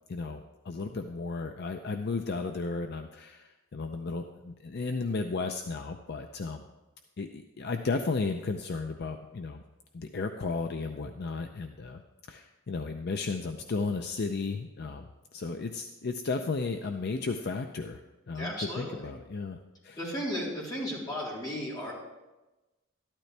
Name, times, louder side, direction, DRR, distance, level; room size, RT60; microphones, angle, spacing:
voice 1, 0.1-6.6 7.2-9.6 9.9-12.0 12.3-18.0 18.3-19.6 19.8-20.0, left 4 dB, 50° left, 6 dB, 0.5 m, -34 dB
voice 2, 18.3-19.0 20.0-21.9, equal, 20° left, -6 dB, 3.7 m, -34 dB
13.0 x 12.0 x 3.3 m, 1.1 s
head